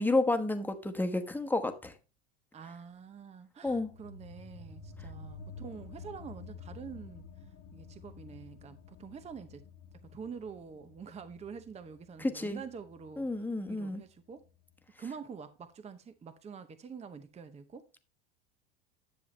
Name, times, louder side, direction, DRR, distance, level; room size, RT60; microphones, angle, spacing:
voice 1, 0.0-1.9 3.6-3.9 12.2-12.6 13.2-14.0, left 2 dB, 5° left, 1.2 m, -30 dB
voice 2, 2.5-7.3 7.7-9.7 10.0-14.4 15.0-18.0, right 6 dB, 20° right, 0.8 m, -46 dB
sound 1, 3.7-14.8, left 4 dB, 55° left, 1.4 m, -51 dB
10.5 x 7.1 x 3.2 m
hypercardioid pair, 100°, 32 cm